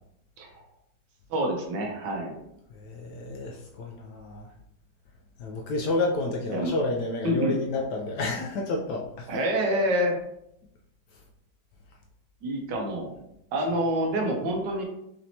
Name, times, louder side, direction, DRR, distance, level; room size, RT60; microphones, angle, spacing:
voice 1, 1.3-2.4 6.5-6.7 7.2-7.6 9.3-10.2 12.4-13.1 13.5-14.8, equal, 70° right, 2 dB, 1.3 m, -27 dB
voice 2, 2.7-4.5 5.4-9.3, left 2 dB, 70° left, 0 dB, 1.0 m, -30 dB
5.1 x 2.8 x 2.7 m, 0.78 s
omnidirectional pair, 2.1 m